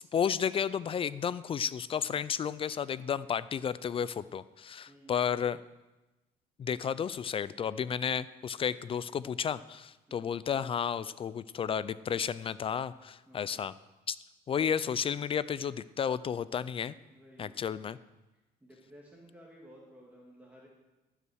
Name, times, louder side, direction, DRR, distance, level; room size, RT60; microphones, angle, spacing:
voice 1, 0.0-5.6 6.6-13.7 14.1-14.2 14.5-16.9 17.4-18.0, left 7 dB, 35° left, 17 dB, 0.3 m, -32 dB
voice 2, 4.9-5.3 10.1-10.3 13.3-13.6 17.1-17.6 18.3-20.7, equal, 10° right, -3 dB, 1.9 m, -55 dB
15.5 x 5.7 x 6.3 m, 1.1 s
cardioid pair, 110°, 17 cm